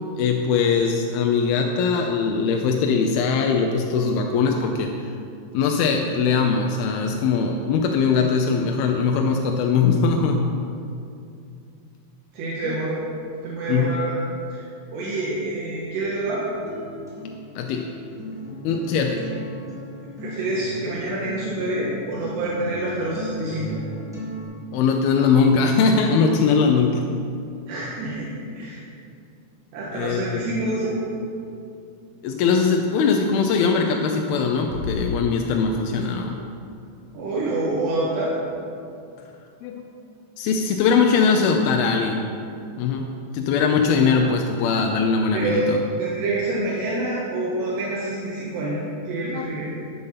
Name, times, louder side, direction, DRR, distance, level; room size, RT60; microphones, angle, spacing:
voice 1, 0.2-4.9 5.5-10.5 12.6-12.8 13.7-13.9 17.6-17.9 18.6-19.4 24.7-27.1 29.9-30.4 32.2-36.4 39.6-39.8 40.4-42.2 42.8-43.1 43.3-45.8 49.2-49.5, left 5 dB, 80° left, 3 dB, 2.3 m, -21 dB
voice 2, 12.3-13.0 13.4-14.2 14.5-14.6 14.9-16.5 20.2-23.8 27.7-28.3 28.5-28.8 29.7-30.9 37.1-38.3 45.3-45.7 46.0-48.8 49.1-49.7, right 2 dB, 75° right, -7 dB, 3.7 m, -27 dB
Acoustic guitar, 16.4-24.4, equal, ahead, 2.3 m, -36 dB
sound 1, 34.7-36.1, left 2 dB, 45° right, 2.3 m, -33 dB
11.5 x 9.2 x 5.7 m, 2.5 s
omnidirectional pair, 5.0 m